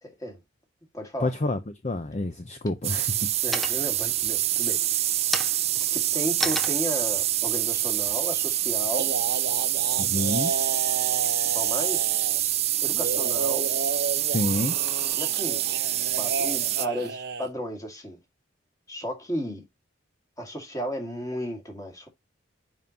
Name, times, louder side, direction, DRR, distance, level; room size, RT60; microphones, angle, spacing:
voice 1, 0.0-0.4 0.9-1.3 3.4-5.1 5.9-9.1 11.5-13.7 15.2-15.8 16.2-18.2 18.9-19.6 20.4-22.1, equal, 15° left, 2.0 m, -34 dB
voice 2, 1.2-3.2 10.0-10.5 14.3-14.8, left 2 dB, 35° left, 0.7 m, -28 dB
sound 1, 1.9-2.4 2.9-3.3 3.5-4.1 4.5-8.9, equal, ahead, 0.7 m, -34 dB
sound 2, 2.8-16.9, right 13 dB, 30° right, 0.3 m, -26 dB
sound 3, 8.9-12.4 12.9-17.5, right 4 dB, 50° right, 0.8 m, -32 dB
7.3 x 5.5 x 2.9 m
head